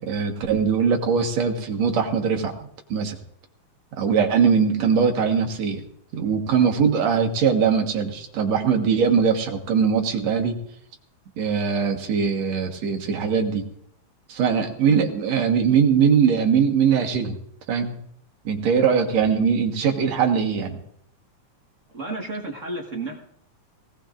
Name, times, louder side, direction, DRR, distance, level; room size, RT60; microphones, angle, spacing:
voice 1, 0.0-2.5 2.9-3.2 4.0-5.8 6.1-10.6 11.4-13.7 14.3-17.3 17.7-18.0 18.5-20.8, right 6 dB, 65° right, 3 dB, 2.6 m, -21 dB
voice 2, 21.9-23.2, right 2 dB, 40° right, 1 dB, 1.2 m, -31 dB
20.5 x 18.0 x 2.5 m, 0.70 s
omnidirectional pair, 3.4 m